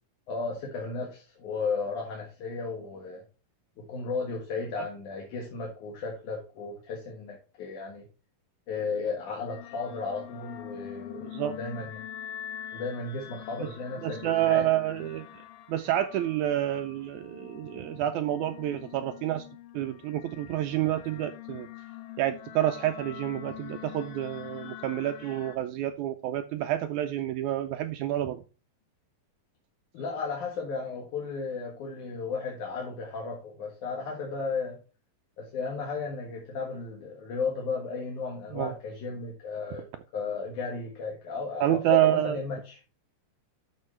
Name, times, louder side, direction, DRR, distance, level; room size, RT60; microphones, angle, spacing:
voice 1, 0.3-3.2 3.8-8.0 8.7-12.0 12.7-14.7 29.9-34.8 35.4-39.9 40.1-42.8, left 4 dB, 65° left, -1 dB, 2.9 m, -34 dB
sound 1, 9.5-25.6, left 12 dB, 80° left, 2.5 m, -44 dB
voice 2, 11.2-11.5 14.0-15.3 15.7-19.4 19.7-21.7 22.2-28.4 38.5-38.7 41.6-42.4, right 13 dB, 80° right, 9 dB, 1.7 m, -28 dB
12.0 x 4.9 x 3.2 m, 0.34 s
omnidirectional pair, 3.8 m